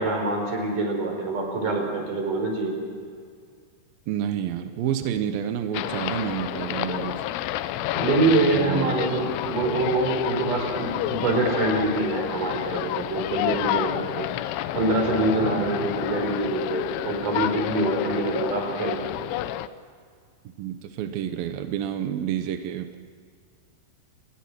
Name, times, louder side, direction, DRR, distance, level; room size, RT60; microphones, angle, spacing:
voice 1, 0.0-2.7 7.9-14.3 14.7-19.0, right 2 dB, 45° right, 2 dB, 5.7 m, -25 dB
voice 2, 4.1-7.2 8.4-9.0 14.0-14.1 15.4-15.8 20.6-23.0, right 10 dB, 80° right, 8 dB, 2.1 m, -29 dB
sound 1, 5.7-19.7, left 13 dB, 80° left, 3.1 m, -29 dB
28.5 x 21.0 x 6.2 m, 2.2 s
omnidirectional pair, 5.6 m